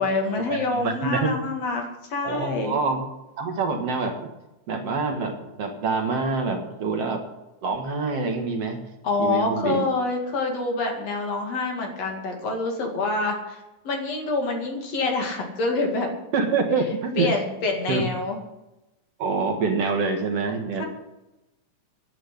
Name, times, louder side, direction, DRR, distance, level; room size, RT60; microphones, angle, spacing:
voice 1, 0.0-2.8 9.0-16.1 17.2-18.4 20.8-20.9, left 3 dB, 60° left, 2 dB, 3.1 m, -26 dB
voice 2, 0.7-1.3 2.2-3.0 3.4-4.3 4.7-7.2 7.6-8.8 9.2-9.9 16.3-17.3 17.9-18.1 19.2-20.8, right 4 dB, 60° right, 3 dB, 2.5 m, -26 dB
10.5 x 8.4 x 9.8 m, 0.96 s
omnidirectional pair, 3.4 m